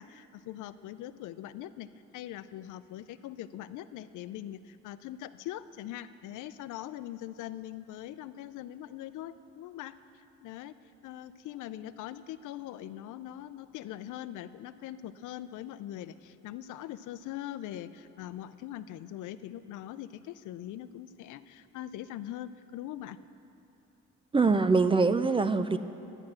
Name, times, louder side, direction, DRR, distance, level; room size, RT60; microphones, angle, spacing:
voice 1, 0.0-1.9 2.1-9.9 10.4-10.7 11.0-23.2, left 12 dB, 80° left, 14 dB, 0.5 m, -42 dB
voice 2, 24.3-25.8, right 4 dB, 20° right, 11 dB, 0.3 m, -23 dB
9.9 x 9.5 x 6.2 m, 2.8 s
cardioid pair, 90°, 30 cm